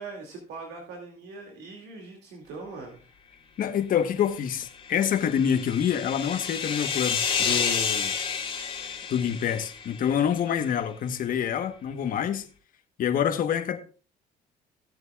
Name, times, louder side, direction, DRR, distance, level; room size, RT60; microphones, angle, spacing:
voice 1, 0.0-3.1, right 3 dB, 80° right, 2.4 m, -41 dB
voice 2, 3.6-8.1 9.1-12.4 13.0-13.8, left 8 dB, 55° left, 1.2 m, -26 dB
sound 1, 4.7-10.2, left 6 dB, 30° left, 2.9 m, -30 dB
16.5 x 7.8 x 2.4 m
cardioid pair, 110°, 17 cm